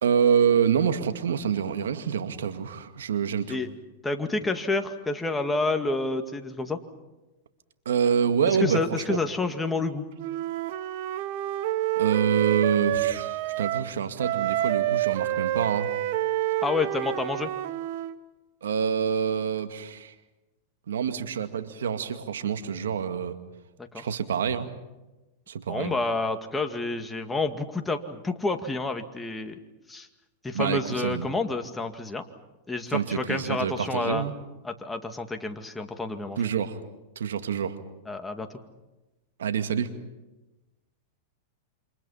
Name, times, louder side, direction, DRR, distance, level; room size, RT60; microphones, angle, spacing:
voice 1, 0.0-3.6 7.9-9.2 12.0-15.9 18.6-20.1 20.9-23.4 24.0-24.7 25.5-26.0 30.5-31.3 32.9-34.3 36.4-36.8 37.2-37.8 39.4-39.9, right 7 dB, 90° right, 8 dB, 2.2 m, -26 dB
voice 2, 4.0-6.8 8.5-10.0 16.6-17.5 23.8-24.1 25.7-29.6 29.9-30.1 30.4-32.2 32.7-34.3 34.6-36.4 38.1-38.5, left 3 dB, 10° left, 5 dB, 2.2 m, -29 dB
Wind instrument woodwind instrument, 10.2-13.9 14.2-18.2, right 14 dB, 60° right, 1.4 m, -28 dB
29.0 x 26.5 x 5.8 m, 1.1 s
hypercardioid pair, 125°, 0 cm